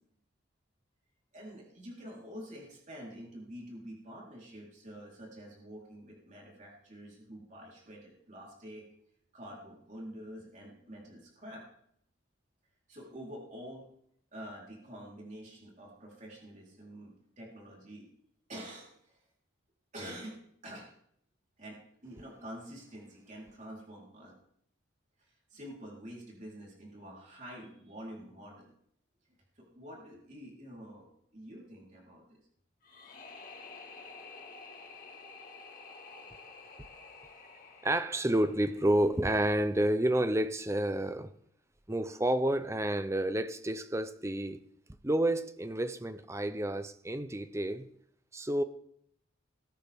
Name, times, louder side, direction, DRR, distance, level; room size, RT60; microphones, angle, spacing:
voice 1, 1.3-8.8 9.3-11.6 12.9-13.9 14.3-18.1 18.5-19.2 19.9-20.4 20.6-20.9 21.6-24.4 25.2-28.7 29.5-32.4, equal, 40° right, 4.0 m, -47 dB
sound 1, 32.8-39.8, left 4 dB, 45° left, 1.9 m, -51 dB
voice 2, 37.8-41.3 41.9-44.6 45.0-47.9 48.3-48.6, right 1 dB, 15° right, 0.6 m, -30 dB
20.0 x 9.2 x 3.6 m
head